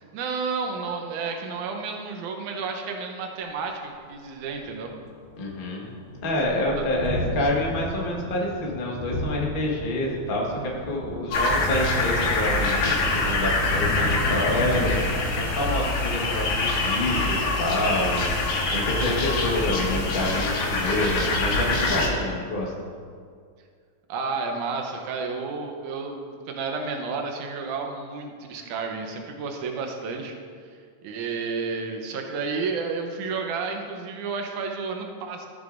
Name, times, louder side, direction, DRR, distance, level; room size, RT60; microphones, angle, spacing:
voice 1, 0.0-4.9 6.8-6.9 24.1-30.4 31.0-35.5, right 4 dB, 85° right, 3 dB, 2.3 m, -31 dB
Thunderstorm, 3.5-3.6 4.0-4.1 4.4-18.0, equal, 30° right, 2.9 m, -37 dB
voice 2, 5.4-5.9 6.2-15.0 15.4-22.7, left 1 dB, 65° left, -3 dB, 0.5 m, -27 dB
sound 1, 11.3-22.1, left 2 dB, 80° left, 2.7 m, -25 dB
14.0 x 8.0 x 2.5 m, 2.1 s
omnidirectional pair, 3.4 m